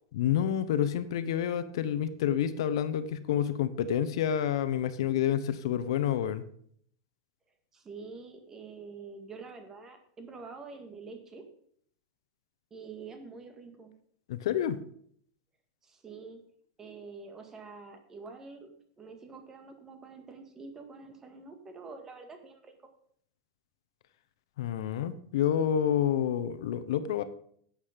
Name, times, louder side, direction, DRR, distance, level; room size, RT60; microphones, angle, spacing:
voice 1, 0.1-6.4 14.3-14.8 24.6-27.2, left 9 dB, 75° left, 12 dB, 0.9 m, -28 dB
voice 2, 7.7-11.4 12.7-13.9 15.8-16.4 16.8-22.8, right 4 dB, 15° right, 6 dB, 1.8 m, -46 dB
11.5 x 8.3 x 5.2 m, 0.63 s
supercardioid pair, 150°, 3 cm